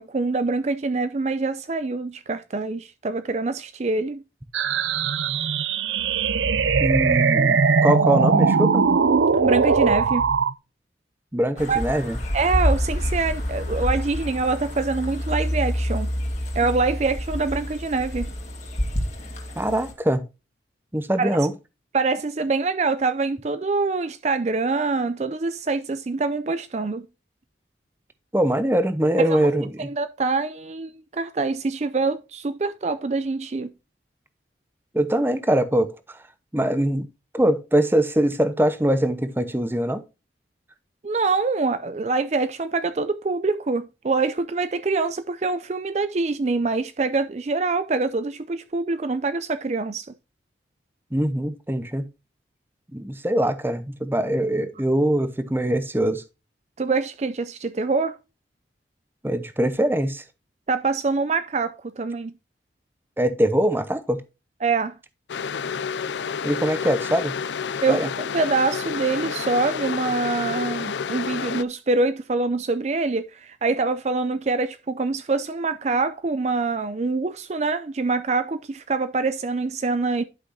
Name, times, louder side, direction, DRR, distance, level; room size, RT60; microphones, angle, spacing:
voice 1, 0.0-4.2 9.4-10.3 11.7-12.0 12.3-16.1 16.5-18.3 21.2-21.3 21.9-27.1 29.2-29.4 29.8-33.7 41.0-50.1 56.8-58.2 60.7-62.3 64.6-64.9 67.8-80.2, right 3 dB, 35° right, 0.4 m, -25 dB
sound 1, 4.5-10.5, right 5 dB, 90° right, 0.5 m, -20 dB
voice 2, 6.8-8.9 11.3-12.2 19.6-20.3 20.9-21.5 28.3-29.9 34.9-35.9 36.5-37.1 37.3-40.0 51.1-52.1 52.9-56.2 59.2-60.2 63.2-64.2 66.4-67.4 67.9-68.1, right 1 dB, 10° right, 0.7 m, -22 dB
sound 2, 11.6-19.9, equal, 40° left, 2.3 m, -27 dB
sound 3, 65.3-71.6, left 6 dB, 75° left, 0.5 m, -29 dB
11.5 x 5.9 x 2.7 m
head